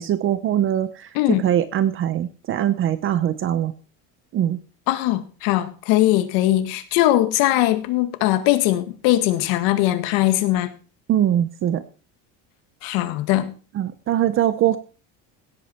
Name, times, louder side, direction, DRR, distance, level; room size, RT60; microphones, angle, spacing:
voice 1, 0.0-1.1 1.4-3.7 4.3-4.6 11.1-11.8 13.7-14.8, right 11 dB, 35° right, 0.7 m, -22 dB
voice 2, 4.9-10.7 12.8-13.5, left 15 dB, 75° left, 1.8 m, -20 dB
16.5 x 8.3 x 4.4 m
cardioid pair, 160°, 36 cm